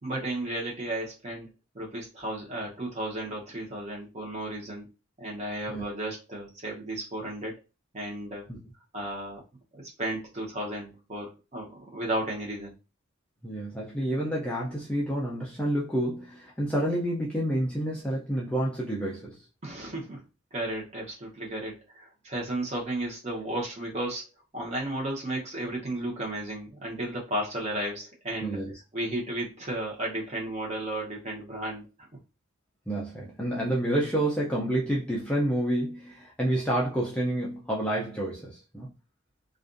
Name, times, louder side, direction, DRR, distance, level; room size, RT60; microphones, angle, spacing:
voice 1, 0.0-1.5 1.7-4.9 5.2-7.5 7.9-8.4 8.9-9.4 9.7-12.7 19.6-20.2 20.5-24.2 24.5-28.6 28.9-31.9, right 1 dB, 30° right, 0.8 m, -34 dB
voice 2, 13.4-19.4 28.4-28.7 32.9-38.9, right 1 dB, 5° left, 0.4 m, -29 dB
2.4 x 2.3 x 2.5 m
head